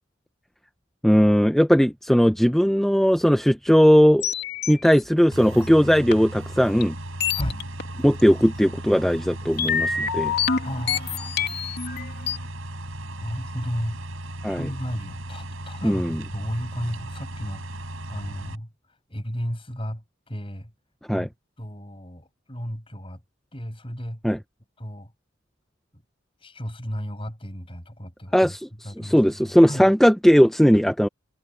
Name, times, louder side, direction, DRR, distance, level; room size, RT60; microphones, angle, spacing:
voice 1, 1.0-4.2 4.7-6.9 8.0-10.3 14.4-14.7 15.8-16.2 21.1-21.3 24.2-24.4 28.3-28.7 29.0-31.1, equal, ahead, 0.6 m, -18 dB
sound 1, 4.2-5.0 6.1-6.2 6.8-6.9 7.2-7.8 8.2-8.3 9.6-12.4, left 6 dB, 55° left, 2.6 m, -26 dB
sound 2, 5.3-18.6, right 1 dB, 90° right, 5.6 m, -36 dB
voice 2, 10.6-11.4 13.2-14.0 14.5-18.7 19.1-20.7 21.1-21.3 21.6-23.2 23.5-24.2 24.8-25.1 25.9-26.0 26.4-29.8, equal, 25° left, 7.7 m, -34 dB
head